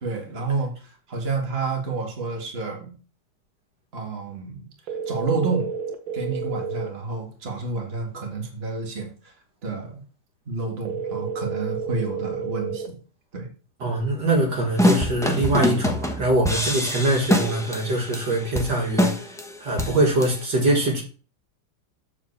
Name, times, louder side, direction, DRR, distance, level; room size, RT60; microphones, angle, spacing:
voice 1, 0.0-2.9 3.9-4.7 5.1-5.7 6.1-9.3 9.6-9.9 10.5-13.0 13.3-13.5, right 4 dB, 30° right, 1 dB, 2.0 m, -29 dB
sound 1, 4.9-6.9 10.8-12.9, right 6 dB, 75° right, 1.9 m, -30 dB
voice 2, 13.8-21.0, right 1 dB, 55° right, 0 dB, 2.5 m, -23 dB
sound 2, 14.8-20.4, left 1 dB, 5° left, 0.4 m, -24 dB
7.4 x 4.8 x 6.7 m, 0.37 s
omnidirectional pair, 2.3 m